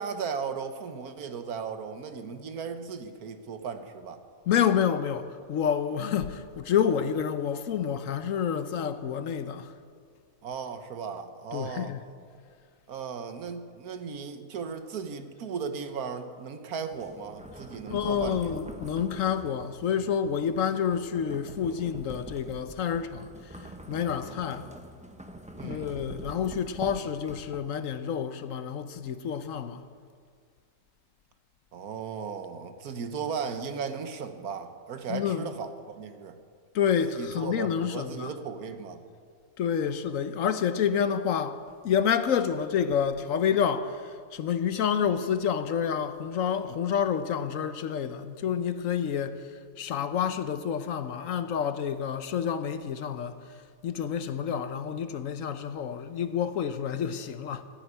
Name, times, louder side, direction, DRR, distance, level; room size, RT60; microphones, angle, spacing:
voice 1, 0.0-4.2 10.4-11.9 12.9-18.4 25.6-25.9 31.7-36.4 37.1-39.0, right 6 dB, 80° right, 1.5 m, -36 dB
voice 2, 4.5-9.7 11.5-12.0 17.9-23.6 23.9-24.7 25.6-29.8 35.1-35.5 36.7-38.3 39.6-49.5 49.8-53.4 53.8-57.6, left 8 dB, 65° left, 1.0 m, -28 dB
sound 1, 16.9-27.9, right 1 dB, 5° right, 0.6 m, -45 dB
14.5 x 8.9 x 9.9 m
omnidirectional pair, 1.6 m